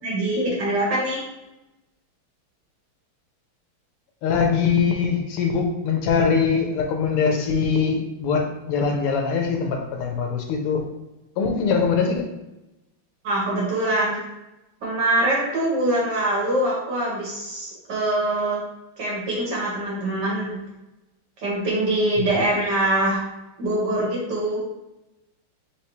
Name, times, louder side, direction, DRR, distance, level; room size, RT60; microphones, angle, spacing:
voice 1, 0.0-1.2 13.2-14.2 14.8-18.6 19.0-20.5 21.4-23.2 23.6-24.6, right 1 dB, 55° right, -5 dB, 1.9 m, -23 dB
voice 2, 4.2-10.9 11.4-12.3 22.2-22.3, left 5 dB, 90° left, 3 dB, 1.7 m, -22 dB
4.5 x 3.3 x 3.1 m, 0.97 s
omnidirectional pair, 2.4 m